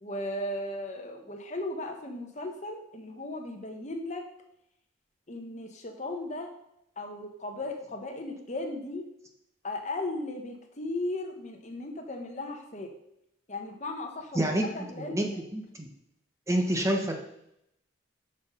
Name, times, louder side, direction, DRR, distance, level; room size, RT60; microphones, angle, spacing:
voice 1, 0.0-4.2 5.3-6.5 7.0-9.0 9.6-12.9 13.5-15.4, left 2 dB, 35° left, 4 dB, 1.1 m, -36 dB
voice 2, 15.0-15.9 16.5-17.1, right 1 dB, 15° right, 2 dB, 0.8 m, -28 dB
6.4 x 6.0 x 5.4 m, 0.78 s
head